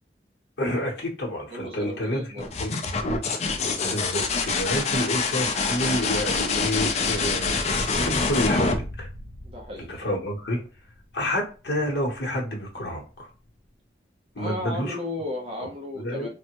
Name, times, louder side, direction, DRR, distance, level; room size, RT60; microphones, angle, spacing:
voice 1, 0.6-2.2 2.6-2.8 3.8-9.1 9.9-10.6 11.1-13.3 14.4-15.0 15.9-16.3, equal, 65° left, -2 dB, 0.8 m, -29 dB
voice 2, 1.5-2.5 9.4-10.1 14.4-16.3, left 1 dB, 35° right, -1 dB, 0.6 m, -34 dB
sound 1, 2.4-10.0 11.7-12.3, left 4 dB, 40° left, 0.4 m, -26 dB
3.3 x 2.0 x 2.8 m, 0.34 s
head